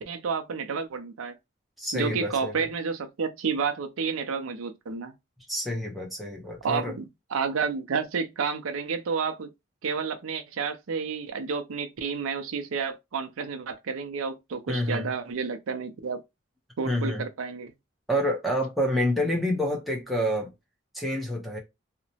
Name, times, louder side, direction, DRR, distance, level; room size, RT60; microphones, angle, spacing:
voice 1, 0.0-1.3 1.9-5.1 6.6-9.5 9.8-16.2 16.8-17.7, right 5 dB, 90° right, 0.5 m, -30 dB
voice 2, 1.8-2.7 5.5-6.9 14.7-15.1 16.8-17.2 18.1-20.5 20.9-21.6, equal, ahead, 0.7 m, -28 dB
2.8 x 2.1 x 2.7 m
head